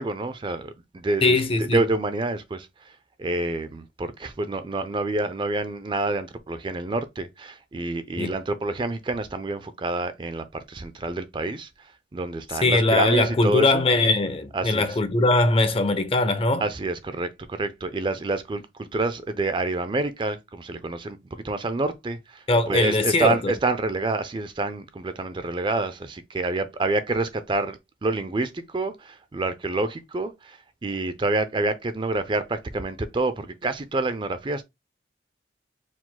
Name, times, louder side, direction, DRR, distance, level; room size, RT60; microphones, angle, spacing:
voice 1, 0.0-13.8 14.5-15.0 16.6-34.6, right 2 dB, 30° right, 0.4 m, -28 dB
voice 2, 1.2-1.9 8.2-8.3 12.6-16.6 22.5-23.5, left 2 dB, 30° left, 0.5 m, -21 dB
4.8 x 2.1 x 3.8 m
head